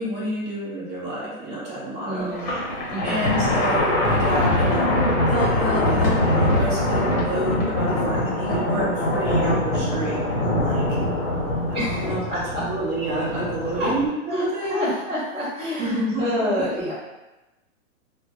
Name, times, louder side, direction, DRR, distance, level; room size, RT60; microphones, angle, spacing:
voice 1, 0.0-2.6 3.0-4.9 5.3-11.0 11.7-14.9 15.8-16.7, right 1 dB, 25° right, -6 dB, 0.7 m, -29 dB
voice 2, 2.0-2.5 2.9-3.3 11.7-12.0 12.3-12.6 13.8-13.9 14.3-16.9, left 1 dB, ahead, -22 dB, 0.3 m, -27 dB
Thunder, 2.3-14.1, left 1 dB, 40° left, 0.9 m, -23 dB
2.1 x 2.1 x 2.8 m, 1.0 s
hypercardioid pair, 130°, 42 cm